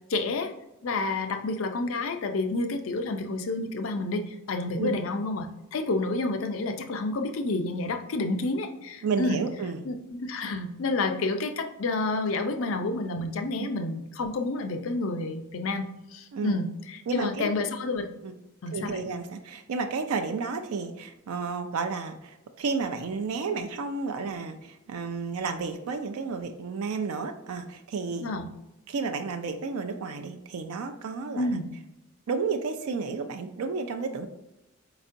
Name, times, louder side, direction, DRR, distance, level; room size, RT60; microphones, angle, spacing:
voice 1, 0.1-0.5 0.8-9.4 9.8-18.1 18.6-19.0 28.2-28.5 31.4-31.7, left 2 dB, 70° left, 6 dB, 0.5 m, -29 dB
voice 2, 9.0-9.8 13.6-13.7 16.3-16.6 17.1-17.5 18.2-18.3 18.7-28.3 28.9-31.6 32.3-34.3, right 4 dB, 90° right, 7 dB, 0.4 m, -32 dB
4.4 x 4.0 x 2.5 m, 0.88 s
head